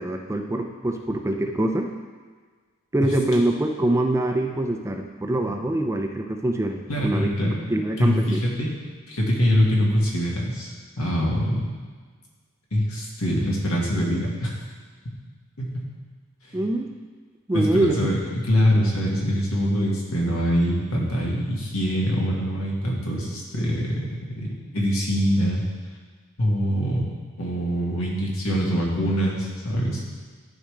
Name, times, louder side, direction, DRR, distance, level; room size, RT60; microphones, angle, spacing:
voice 1, 0.0-1.9 2.9-7.3 7.7-8.4 16.5-16.9 17.5-18.1, right 1 dB, 15° right, 4 dB, 0.4 m, -24 dB
voice 2, 6.9-8.7 9.1-11.7 12.7-14.6 15.1-15.2 15.6-15.9 17.5-25.6 26.4-27.1 27.4-30.0, equal, 75° left, -3 dB, 1.8 m, -24 dB
12.0 x 5.0 x 3.3 m, 1.5 s
head